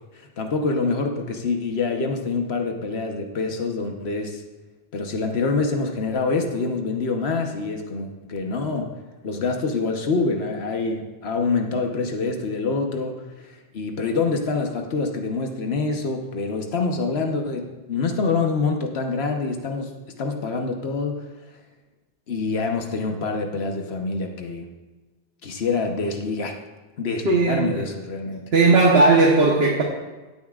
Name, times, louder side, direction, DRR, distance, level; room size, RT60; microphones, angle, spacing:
voice 1, 0.1-4.4 4.9-8.9 9.2-21.3 22.3-24.7 25.4-26.6 27.0-28.4, left 4 dB, 75° left, 3 dB, 1.3 m, -26 dB
voice 2, 27.2-27.9 28.5-29.8, right 3 dB, 70° right, -2 dB, 1.4 m, -17 dB
17.0 x 8.5 x 2.4 m, 1.2 s
omnidirectional pair, 1.1 m